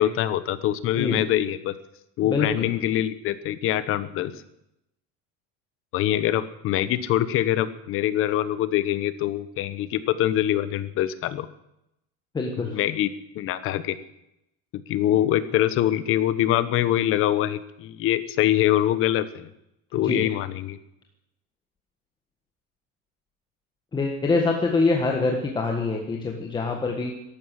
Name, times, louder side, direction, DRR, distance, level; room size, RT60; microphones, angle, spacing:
voice 1, 0.0-1.7 2.2-4.3 5.9-11.5 12.6-13.1 13.3-14.0 14.7-19.5 19.9-20.8, left 12 dB, 45° left, 14 dB, 1.1 m, -24 dB
voice 2, 2.2-2.7 12.3-12.8 20.0-20.3 23.9-27.1, left 3 dB, 15° left, 1 dB, 1.5 m, -25 dB
14.0 x 11.5 x 7.6 m, 0.83 s
cardioid pair, 165°, 30 cm